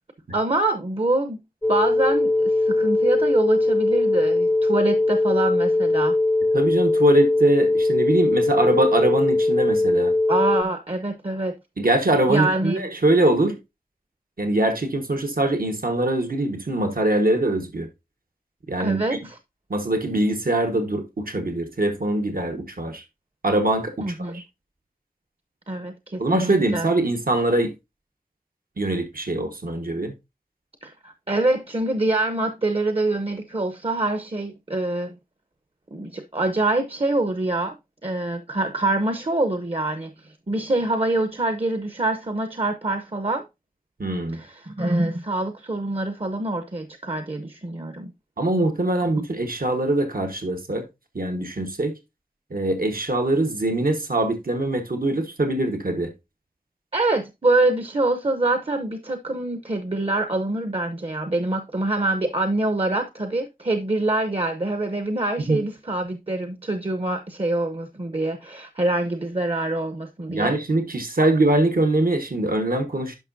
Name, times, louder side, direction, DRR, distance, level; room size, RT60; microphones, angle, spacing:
voice 1, 0.3-1.4 1.7-6.2 10.3-11.5 12.3-12.9 18.8-19.4 24.0-24.4 25.7-26.9 30.8-35.1 35.9-37.8 38.0-43.4 44.3-48.1 49.2-49.3 56.9-70.6, right 2 dB, 40° right, 0.8 m, -25 dB
sound 1, 1.6-10.6, left 2 dB, 10° left, 0.4 m, -20 dB
voice 2, 6.5-10.1 11.8-13.6 14.4-17.9 18.7-19.0 19.7-23.0 23.4-24.4 26.2-27.7 28.8-30.1 44.0-44.4 48.4-50.9 51.1-51.9 52.5-56.1 65.5-65.6 70.3-73.2, right 2 dB, 75° right, 1.3 m, -23 dB
10.5 x 5.6 x 2.6 m
wide cardioid pair, 45°, 15 cm